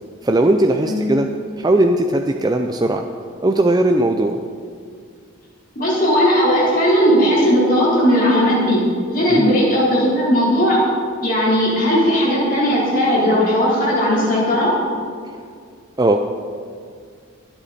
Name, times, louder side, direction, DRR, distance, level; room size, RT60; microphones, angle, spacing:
voice 1, 0.2-1.3 1.6-3.0 3.4-4.4 9.3-9.5 16.0-16.2, right 1 dB, 20° right, 4 dB, 0.4 m, -17 dB
voice 2, 5.8-8.8 9.1-10.8 11.2-14.7, equal, 40° left, -6 dB, 3.9 m, -17 dB
23.0 x 8.1 x 4.3 m, 2.2 s
head